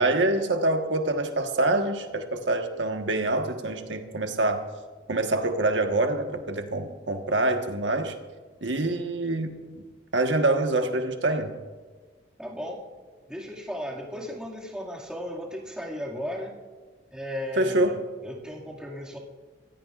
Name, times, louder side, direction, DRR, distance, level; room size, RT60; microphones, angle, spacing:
voice 1, 0.0-4.6 5.1-8.1 8.6-9.8 10.1-11.5 17.6-18.0, right 2 dB, 80° right, 5 dB, 1.4 m, -25 dB
voice 2, 12.4-12.8 13.3-16.5 17.1-19.2, equal, 5° right, -4 dB, 2.1 m, -35 dB
24.0 x 16.0 x 2.5 m, 1.4 s
head